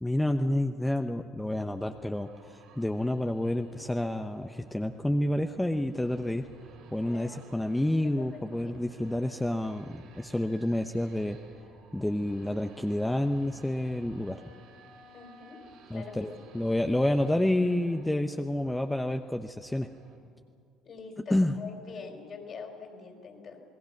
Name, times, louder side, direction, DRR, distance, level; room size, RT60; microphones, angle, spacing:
voice 1, 0.0-6.5 6.9-11.4 11.9-14.4 15.9-19.9 21.3-21.5, left 1 dB, 10° left, 6 dB, 0.9 m, -29 dB
sound 1, 1.8-20.2, right 4 dB, 70° right, 5.3 m, -55 dB
voice 2, 7.0-7.4 7.7-7.8 8.2-8.8 15.1-15.6 15.9-16.5 20.8-23.6, left 5 dB, 50° left, 4 dB, 4.4 m, -44 dB
28.5 x 19.5 x 6.0 m, 2.4 s
hypercardioid pair, 60°, 0 cm